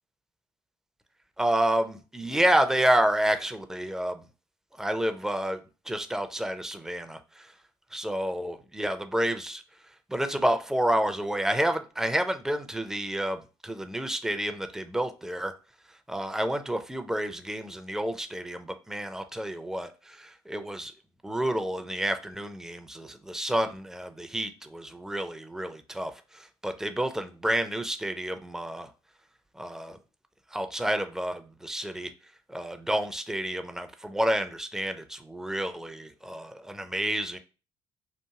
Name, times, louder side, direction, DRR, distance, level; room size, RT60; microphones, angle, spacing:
voice 1, 1.4-4.3 4.8-5.6 5.9-7.5 7.9-9.6 10.1-15.5 16.1-20.9 21.2-28.9 29.6-30.0 30.5-32.1 32.5-37.4, right 1 dB, 5° right, 0.4 m, -29 dB
2.8 x 2.5 x 2.3 m
figure-of-eight pair, 50°, 13 cm